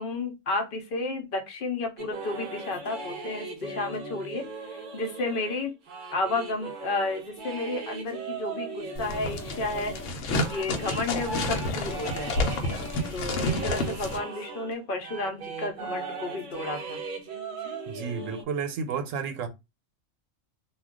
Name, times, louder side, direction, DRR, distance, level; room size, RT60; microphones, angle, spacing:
voice 1, 0.0-5.7 6.1-12.3 13.1-17.0, left 2 dB, 55° left, 0.7 m, -32 dB
sound 1, 2.0-14.8 15.0-18.4, right 3 dB, 55° right, 0.6 m, -38 dB
sound 2, 9.0-14.2, left 1 dB, 75° left, 1.0 m, -30 dB
voice 2, 13.2-13.7 17.9-19.5, right 6 dB, 80° right, 1.0 m, -33 dB
2.4 x 2.2 x 3.6 m
omnidirectional pair, 1.3 m